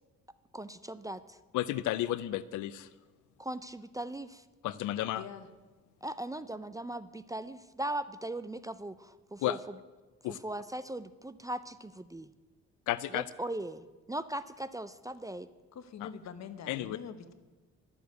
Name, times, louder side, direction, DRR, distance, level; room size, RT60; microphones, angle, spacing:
voice 1, 0.5-1.2 3.4-4.4 6.0-9.6 10.3-12.3 13.1-15.5, right 1 dB, 10° right, 13 dB, 0.4 m, -39 dB
voice 2, 1.5-2.9 4.6-5.2 9.4-9.6 10.2-10.4 12.9-13.3 16.0-16.1 16.7-17.0, left 14 dB, 80° left, 16 dB, 0.5 m, -32 dB
voice 3, 5.1-5.5 15.7-17.3, left 7 dB, 60° left, 10 dB, 1.1 m, -44 dB
12.0 x 7.1 x 9.3 m, 1.2 s
cardioid pair, 90°, 30 cm